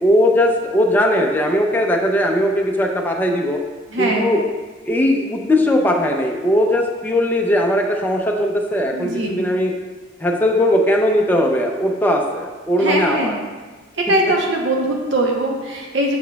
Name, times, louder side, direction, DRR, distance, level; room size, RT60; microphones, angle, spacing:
voice 1, 0.0-3.6 4.0-4.4 4.9-9.8 10.2-13.3, left 1 dB, 10° left, 0 dB, 0.5 m, -18 dB
voice 2, 3.9-4.3 8.9-9.4 12.8-13.4 14.0-16.2, right 1 dB, 65° right, 0 dB, 0.9 m, -21 dB
7.0 x 6.1 x 2.3 m, 1.3 s
head